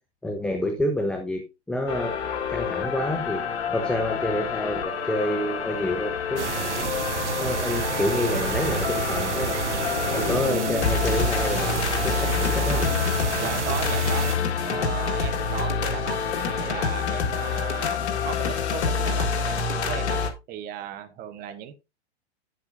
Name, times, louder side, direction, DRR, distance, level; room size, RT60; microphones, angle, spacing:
voice 1, 0.2-2.1 2.5-3.4 3.7-6.9 7.4-9.5 10.1-12.9, left 1 dB, 5° left, 0.8 m, -28 dB
sound 1, 1.9-20.3, left 6 dB, 75° left, 1.7 m, -27 dB
sound 2, 6.4-14.4, right 6 dB, 85° right, 1.2 m, -29 dB
voice 2, 13.4-14.3 14.6-20.2 20.5-21.7, right 10 dB, 25° right, 0.9 m, -36 dB
9.5 x 7.5 x 2.6 m
hypercardioid pair, 125°, 34 cm